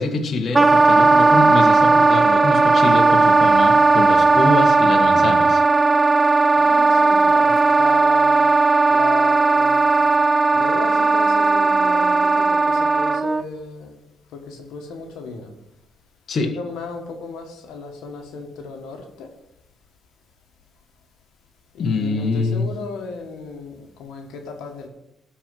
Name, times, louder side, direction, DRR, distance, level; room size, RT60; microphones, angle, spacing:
voice 1, 0.0-5.6 16.3-16.5 21.8-22.6, left 3 dB, 50° left, 1.7 m, -24 dB
Wind instrument woodwind instrument, 0.5-13.4, right 3 dB, 20° right, 0.4 m, -16 dB
voice 2, 6.3-8.5 8.9-10.0 10.5-14.0 14.3-15.5 16.5-19.3 21.7-24.9, left 4 dB, 90° left, 1.5 m, -35 dB
12.5 x 4.6 x 7.8 m
cardioid pair, 90°, 0 cm